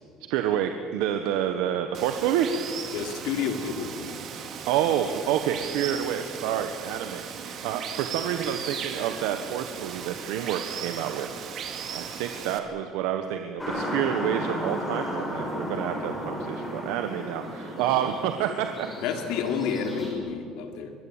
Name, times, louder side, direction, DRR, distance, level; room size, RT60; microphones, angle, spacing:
voice 1, 0.3-2.5 4.7-7.2 7.6-11.6 11.9-18.7, right 10 dB, 90° right, 6 dB, 1.3 m, -28 dB
Water, 1.9-12.6, right 7 dB, 40° right, 2.3 m, -37 dB
voice 2, 2.9-4.2 19.0-20.9, left 6 dB, 75° left, 5 dB, 3.1 m, -30 dB
sound 1, 13.6-20.1, equal, 5° left, 5.8 m, -34 dB
23.5 x 18.5 x 9.0 m, 2.4 s
cardioid pair, 160°, 0 cm